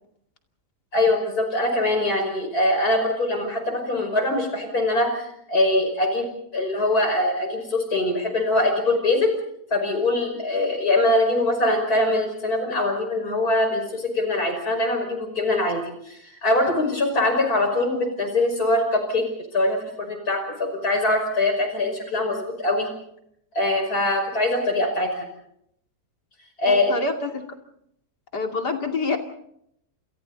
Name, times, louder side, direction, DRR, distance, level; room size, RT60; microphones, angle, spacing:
voice 1, 0.9-9.3 9.7-19.3 19.5-22.9 23.5-25.3 26.6-26.9, left 2 dB, 65° left, 4 dB, 6.0 m, -23 dB
voice 2, 26.7-27.4 28.3-29.2, left 3 dB, 85° left, 4 dB, 3.2 m, -26 dB
29.5 x 27.5 x 4.1 m, 0.74 s
omnidirectional pair, 1.7 m